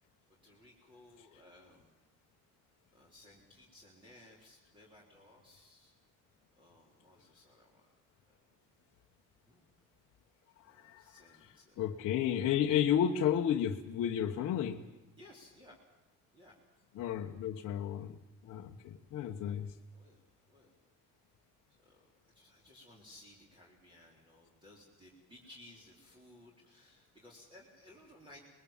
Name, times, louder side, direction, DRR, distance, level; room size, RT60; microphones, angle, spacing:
voice 1, 0.3-2.0 2.9-5.9 6.6-7.9 9.5-9.7 10.7-12.1 15.2-15.8 16.3-16.6 19.4-19.5 19.9-20.7 21.8-22.1 22.3-28.4, left 1 dB, 15° right, 3.9 m, -59 dB
voice 2, 10.7-11.0 11.8-14.8 17.0-18.2 18.4-19.7, left 9 dB, 50° left, 1.2 m, -32 dB
28.0 x 21.5 x 7.3 m
cardioid pair, 170°, 32 cm